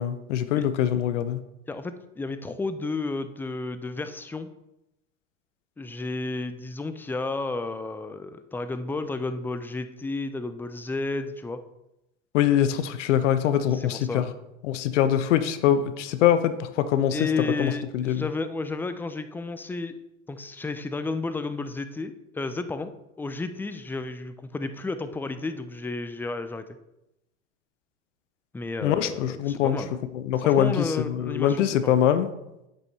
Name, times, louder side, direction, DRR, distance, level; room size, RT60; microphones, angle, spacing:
voice 1, 0.0-1.4 12.3-14.3 14.6-17.2 17.6-18.2 28.8-29.8 30.1-32.3, left 10 dB, 75° left, 12 dB, 0.7 m, -23 dB
voice 2, 1.7-4.5 5.8-11.6 13.7-14.3 17.1-19.9 20.3-22.9 23.2-26.7 28.5-30.0 30.4-32.0, left 3 dB, 5° left, 10 dB, 0.3 m, -32 dB
8.9 x 6.4 x 2.7 m, 0.90 s
hypercardioid pair, 90°, 37 cm